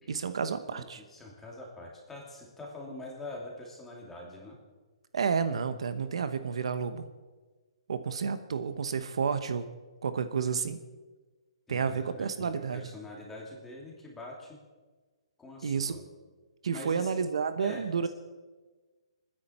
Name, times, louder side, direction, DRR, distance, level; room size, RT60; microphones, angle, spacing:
voice 1, 0.1-1.0 5.1-7.1 7.9-9.6 10.0-10.8 11.7-12.8 15.6-15.9 16.6-18.1, right 6 dB, 75° right, 11 dB, 1.1 m, -30 dB
voice 2, 0.7-4.6 11.7-14.6 15.4-16.1 16.7-17.1 17.6-18.1, left 2 dB, 5° left, -2 dB, 2.7 m, -44 dB
29.5 x 10.0 x 4.4 m, 1.3 s
hypercardioid pair, 165°, 3 cm